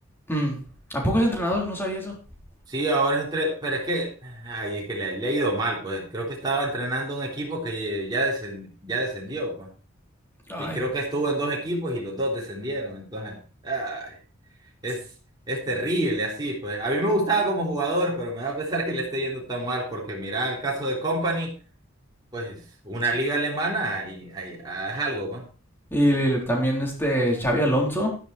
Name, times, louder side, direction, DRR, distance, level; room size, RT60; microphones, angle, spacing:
voice 1, 0.3-0.6 0.9-2.2 10.5-10.8 25.9-28.2, equal, 10° left, 0 dB, 3.7 m, -24 dB
voice 2, 2.7-9.7 10.6-13.4 13.6-14.2 14.8-15.0 15.5-21.5 22.3-25.5, right 2 dB, 20° right, -4 dB, 3.7 m, -27 dB
12.0 x 10.5 x 4.5 m, 0.37 s
head